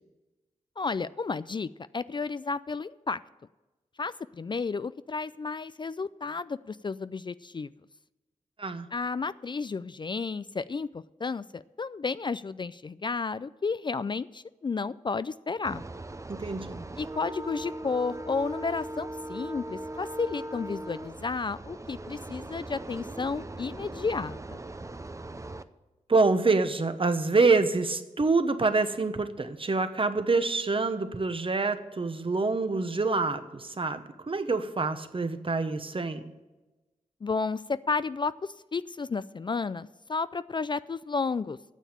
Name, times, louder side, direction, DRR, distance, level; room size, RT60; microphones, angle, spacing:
voice 1, 0.8-3.2 4.0-7.7 8.9-15.9 17.0-24.6 37.2-41.6, left 4 dB, 35° left, 16 dB, 0.3 m, -32 dB
sound 1, 15.6-25.6, right 1 dB, 20° right, 0.6 m, -39 dB
voice 2, 16.3-16.8 26.1-36.2, right 3 dB, 40° right, 10 dB, 1.0 m, -26 dB
9.2 x 7.2 x 8.6 m, 1.1 s
cardioid pair, 45°, 14 cm